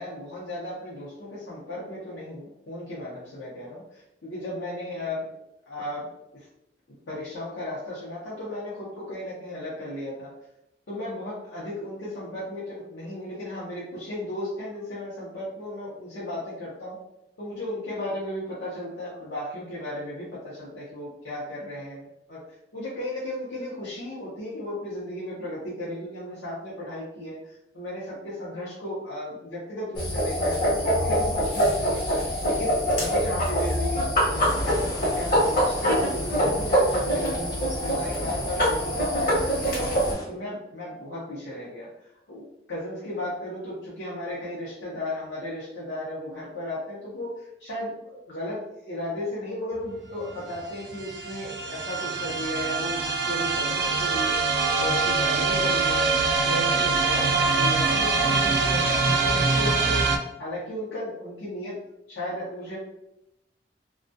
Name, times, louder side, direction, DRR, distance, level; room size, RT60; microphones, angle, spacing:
voice 1, 0.0-5.3 5.7-6.1 6.3-6.5 7.1-10.3 10.9-17.0 17.4-22.4 22.7-39.8 40.3-56.1 56.4-61.8 62.1-62.8, left 1 dB, 90° left, -7 dB, 0.7 m, -35 dB
sound 1, 30.0-40.1, equal, 50° left, 0.9 m, -24 dB
sound 2, 34.3-40.3, left 2 dB, 20° left, 0.3 m, -39 dB
sound 3, 49.9-50.0 50.2-60.2, right 4 dB, 65° right, 0.3 m, -24 dB
2.2 x 2.2 x 2.6 m, 0.85 s
head